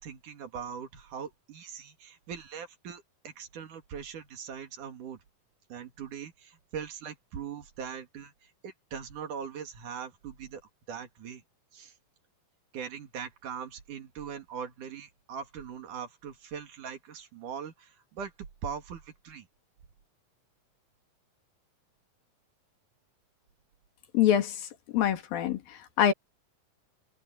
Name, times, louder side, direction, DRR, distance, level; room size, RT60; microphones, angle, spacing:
voice 1, 0.0-5.2 5.7-10.6 10.9-11.4 11.7-11.9 12.7-18.3 18.6-19.5, right 7 dB, 65° right, 3.5 m, -41 dB
voice 2, 24.1-24.7 24.9-26.1, left 10 dB, 90° left, 3.7 m, -25 dB
omnidirectional pair, 4.0 m